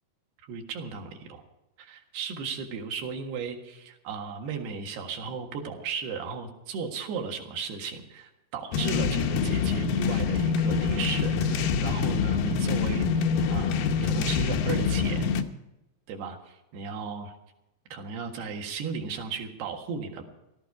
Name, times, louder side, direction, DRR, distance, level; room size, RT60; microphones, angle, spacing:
voice 1, 0.5-1.4 1.8-15.3 16.1-17.3 17.9-20.2, right 5 dB, 65° right, 3 dB, 3.5 m, -35 dB
sound 1, 8.7-15.4, left 5 dB, 85° left, 1.9 m, -25 dB
17.0 x 13.5 x 4.8 m, 0.92 s
omnidirectional pair, 5.3 m